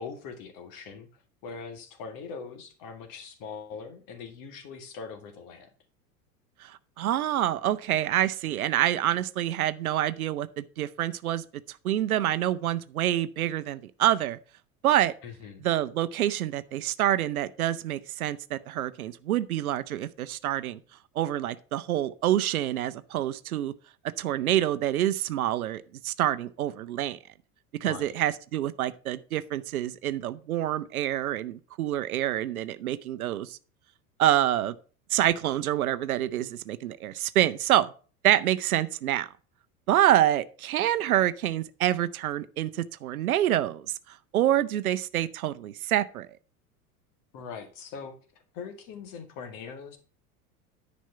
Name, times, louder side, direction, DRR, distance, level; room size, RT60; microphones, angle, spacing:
voice 1, 0.0-5.7 15.2-15.6 27.8-28.2 47.3-48.1 48.5-50.0, left 5 dB, 45° left, 2.0 m, -41 dB
voice 2, 6.6-11.4 11.8-14.4 14.8-15.1 15.6-20.8 21.2-23.7 24.2-27.2 27.8-33.6 34.2-34.7 35.1-37.9 38.2-39.3 39.9-46.3, right 12 dB, 70° right, 0.7 m, -27 dB
10.0 x 5.2 x 5.6 m
figure-of-eight pair, 80°, 45 cm